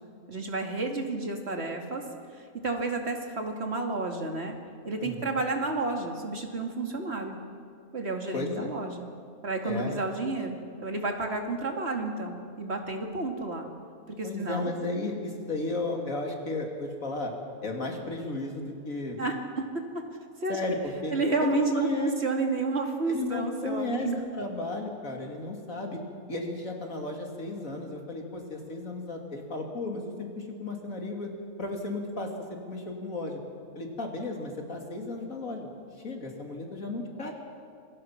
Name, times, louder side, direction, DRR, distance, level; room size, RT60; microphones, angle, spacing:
voice 1, 0.3-2.0 2.4-4.6 4.8-7.4 7.9-9.1 9.4-13.7 14.1-14.7 19.2-19.6 20.4-20.6 21.1-24.2, right 3 dB, 45° right, 2 dB, 2.7 m, -31 dB
voice 2, 5.0-5.4 8.3-8.7 9.6-10.0 14.2-17.3 17.6-19.2 20.5-21.1 21.4-22.1 23.1-24.1 24.3-26.0 26.3-31.3 31.6-33.4 33.7-35.7 36.0-37.3, left 2 dB, 65° left, 1 dB, 3.3 m, -34 dB
27.5 x 22.0 x 6.0 m, 2.3 s
omnidirectional pair, 1.5 m